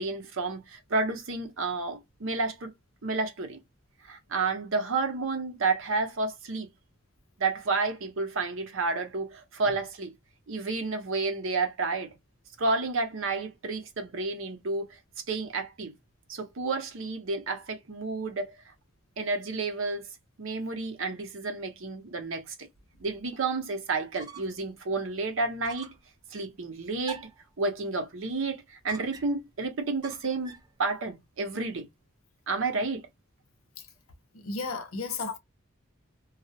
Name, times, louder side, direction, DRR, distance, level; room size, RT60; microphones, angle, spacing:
voice 1, 0.0-2.7 3.0-3.6 4.0-6.7 7.4-10.1 10.5-12.1 12.6-14.9 15.3-15.9 16.3-18.5 19.2-20.1 20.4-22.5 23.0-25.9 26.3-27.3 27.6-30.5 30.8-31.9 32.5-33.1, right 3 dB, 65° right, 0.7 m, -30 dB
sound 1, 24.1-24.7 25.0-25.1 25.6-26.1 27.0-27.5 28.9-29.5 30.0-30.7, right 4 dB, 20° right, 0.4 m, -46 dB
voice 2, 34.3-35.4, left 4 dB, 75° left, 0.7 m, -33 dB
2.3 x 2.0 x 2.6 m
head